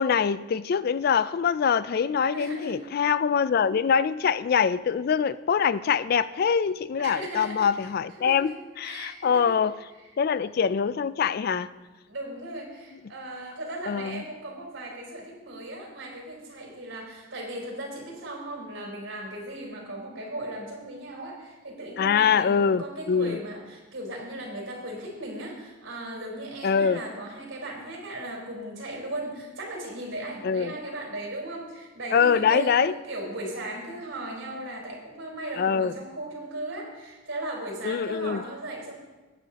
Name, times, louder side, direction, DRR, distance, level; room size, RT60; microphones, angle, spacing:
voice 1, 0.0-9.8 10.2-11.7 13.9-14.2 22.0-23.4 26.6-27.0 30.4-30.7 32.1-32.9 35.6-35.9 37.8-38.4, left 6 dB, 50° left, 0.3 m, -24 dB
voice 2, 2.0-2.8 7.0-7.9 8.1-9.6 10.0-10.1 12.1-39.0, right 1 dB, 80° right, 4.1 m, -37 dB
20.5 x 9.2 x 2.9 m
head